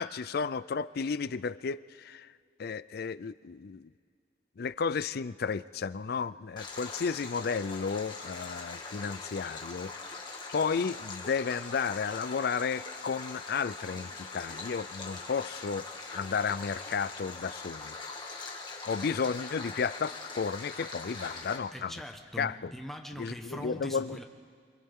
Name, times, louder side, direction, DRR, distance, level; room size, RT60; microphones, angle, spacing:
voice 1, 0.0-2.3 2.6-3.9 4.6-10.0 10.5-15.9 16.1-17.9 18.9-21.9 22.4-22.7 23.2-24.2, left 5 dB, 60° left, 16 dB, 0.4 m, -33 dB
Stream, 6.6-21.6, left 3 dB, 25° left, 2.2 m, -42 dB
voice 2, 21.4-24.2, equal, ahead, 3 dB, 1.2 m, -42 dB
29.0 x 26.5 x 3.7 m, 2.1 s
head